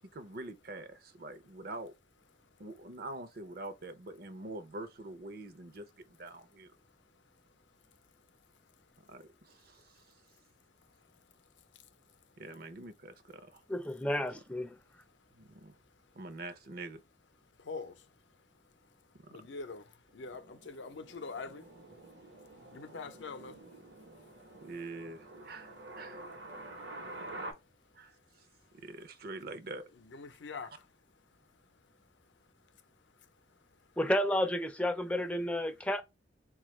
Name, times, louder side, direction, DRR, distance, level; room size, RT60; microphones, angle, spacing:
voice 1, 0.1-1.9 2.6-6.7 9.1-10.1 12.4-13.6 14.0-14.1 15.3-15.8 16.2-17.0 24.6-26.2 27.9-28.1 28.7-29.9, right 2 dB, 55° right, 0.6 m, -45 dB
voice 2, 6.8-7.5 7.9-8.0 8.9-9.0 10.0-10.1 10.8-12.2 14.9-15.6 16.1-16.2 17.6-19.0 19.3-21.7 22.4-24.5 30.0-30.9 31.4-31.5 31.8-32.1 32.7-32.8 33.2-33.3, left 4 dB, 85° left, 0.6 m, -47 dB
voice 3, 13.7-14.8 34.0-36.0, left 1 dB, 5° left, 0.4 m, -31 dB
sound 1, 20.1-27.5, right 2 dB, 75° right, 0.9 m, -48 dB
4.1 x 2.3 x 3.1 m
head